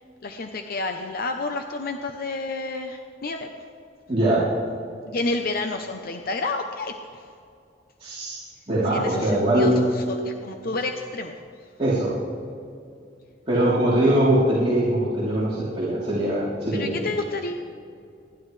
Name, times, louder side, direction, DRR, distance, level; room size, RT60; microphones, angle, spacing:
voice 1, 0.0-3.7 5.1-7.3 8.9-11.3 11.6-11.7 16.7-17.7, left 3 dB, 55° left, 5 dB, 0.8 m, -30 dB
voice 2, 4.1-4.5 8.0-9.8 11.8-12.1 13.5-16.9, right 1 dB, 30° right, -11 dB, 3.5 m, -22 dB
28.0 x 12.0 x 3.3 m, 2.4 s
head